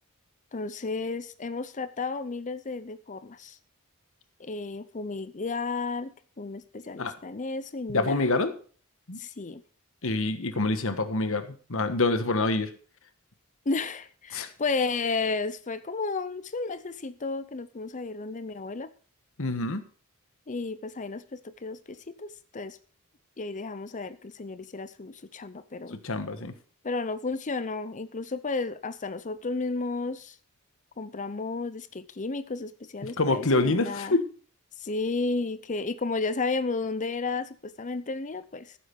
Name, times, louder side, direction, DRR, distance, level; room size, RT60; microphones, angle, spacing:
voice 1, 0.5-3.6 4.4-6.1 6.4-8.3 9.2-9.6 13.7-18.9 20.5-22.8 23.4-26.0 26.8-30.4 31.0-34.2 34.8-38.8, left 3 dB, 35° left, 0.7 m, -33 dB
voice 2, 7.9-8.5 9.1-9.2 10.0-12.7 14.3-14.5 19.4-19.8 25.9-26.5 33.2-34.2, left 2 dB, 65° left, 1.4 m, -26 dB
15.0 x 7.6 x 5.3 m
head